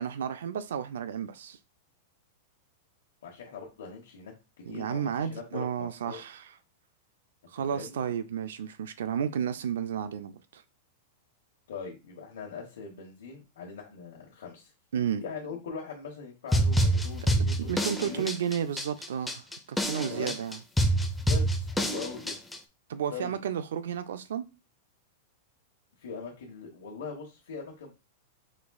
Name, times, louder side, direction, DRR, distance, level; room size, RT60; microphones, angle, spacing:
voice 1, 0.0-1.6 4.7-6.5 7.5-10.6 14.9-15.2 17.2-20.6 22.9-24.5, right 8 dB, 85° right, 0.4 m, -32 dB
voice 2, 3.2-4.3 4.7-6.2 7.7-8.0 11.7-14.7 15.2-18.2 20.1-20.4 21.3-22.4 23.1-23.4 26.0-27.9, left 5 dB, 80° left, 1.1 m, -41 dB
sound 1, 16.5-22.6, right 1 dB, 5° left, 0.5 m, -27 dB
5.1 x 3.5 x 2.3 m
supercardioid pair, 145°, 0 cm